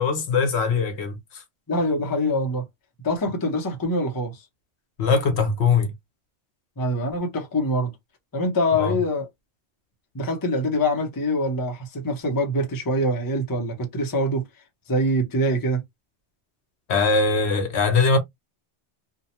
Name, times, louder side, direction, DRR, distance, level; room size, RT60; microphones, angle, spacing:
voice 1, 0.0-1.4 5.0-5.9 8.7-9.0 16.9-18.2, left 4 dB, 65° left, 1.0 m, -21 dB
voice 2, 1.7-2.6 3.0-4.4 6.8-7.9 8.3-9.3 10.1-14.5 14.9-15.8, equal, 25° left, 0.6 m, -24 dB
2.8 x 2.2 x 2.8 m
omnidirectional pair, 1.2 m